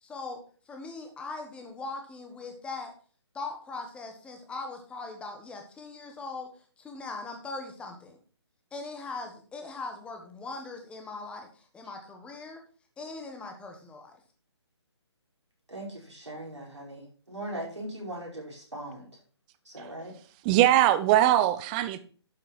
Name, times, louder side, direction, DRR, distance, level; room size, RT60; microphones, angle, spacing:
voice 1, 0.0-0.4 0.7-2.9 3.3-6.5 6.8-8.2 8.7-12.6 13.0-14.2, left 3 dB, 5° left, 4 dB, 1.4 m, -40 dB
voice 2, 15.7-19.1 19.6-20.1, right 1 dB, 90° right, -2 dB, 4.9 m, -39 dB
voice 3, 20.4-22.0, right 13 dB, 15° right, 13 dB, 0.5 m, -21 dB
11.5 x 5.8 x 4.4 m, 0.41 s
figure-of-eight pair, 140°, 15 cm